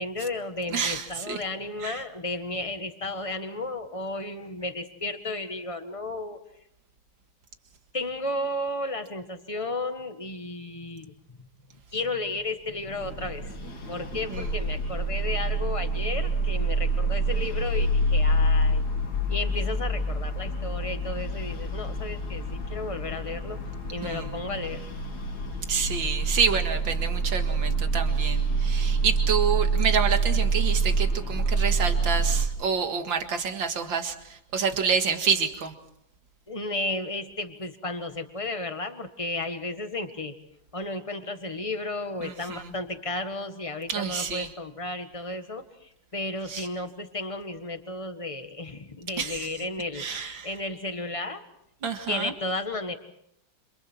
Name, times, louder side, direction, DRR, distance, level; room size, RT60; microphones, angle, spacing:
voice 1, 0.0-6.4 7.9-11.4 11.9-13.5 13.9-18.8 19.3-23.6 23.9-24.9 36.5-40.3 40.7-51.4 52.1-52.9, left 2 dB, 15° left, 8 dB, 1.5 m, -33 dB
voice 2, 0.7-1.4 1.8-2.0 14.3-14.5 24.1-24.3 25.7-35.7 42.2-42.7 43.9-44.5 46.5-46.7 49.2-49.5 50.0-50.5 51.8-52.3, right 6 dB, 70° right, 6 dB, 2.6 m, -28 dB
sound 1, 12.8-32.5, right 2 dB, 55° left, 3.1 m, -27 dB
29.5 x 27.5 x 4.6 m, 0.73 s
omnidirectional pair, 2.2 m